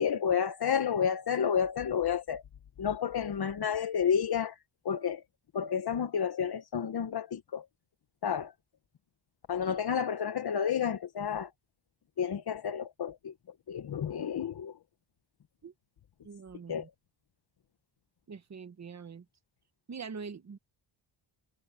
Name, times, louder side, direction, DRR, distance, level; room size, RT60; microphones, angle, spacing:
voice 1, 0.0-2.4 2.8-4.6 4.8-5.2 5.5-7.6 8.2-8.5 9.5-11.5 12.2-13.3 13.7-14.8 16.7-16.9, left 7 dB, 50° left, 1.0 m, -30 dB
voice 2, 16.2-16.9 18.3-19.2 19.9-20.6, right 5 dB, 35° right, 1.0 m, -43 dB
wide cardioid pair, 155°, 48 cm